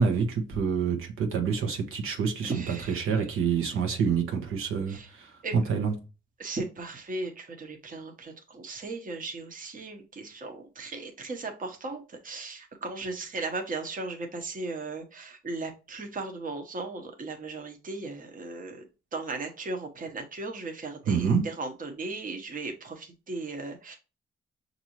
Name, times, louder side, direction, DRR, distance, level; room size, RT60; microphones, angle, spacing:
voice 1, 0.0-5.9 21.1-21.5, right 6 dB, 80° right, 1.0 m, -27 dB
voice 2, 2.4-3.2 4.9-5.1 5.4-5.6 6.4-18.8 19.1-24.0, right 3 dB, 40° right, 1.1 m, -37 dB
5.9 x 2.7 x 3.0 m
cardioid pair, 90°, 21 cm